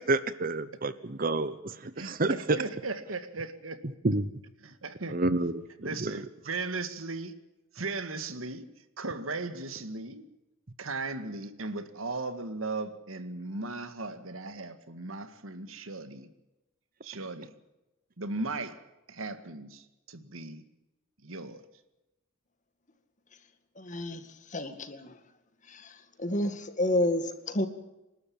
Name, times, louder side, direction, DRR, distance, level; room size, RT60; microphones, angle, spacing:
voice 1, 0.1-2.3 4.0-4.3 5.1-5.5 6.0-6.1, right 2 dB, 45° right, 14 dB, 1.0 m, -28 dB
voice 2, 2.0-3.8 4.6-5.2 5.8-7.3 7.7-8.6 9.0-10.3 10.8-16.3 17.0-17.5 18.2-20.6 21.2-21.6, right 3 dB, 85° right, 10 dB, 2.0 m, -37 dB
voice 3, 23.8-24.2 24.5-25.1 25.7-25.9 26.2-27.7, left 1 dB, 35° left, 9 dB, 2.1 m, -30 dB
28.0 x 12.5 x 8.7 m, 0.98 s
head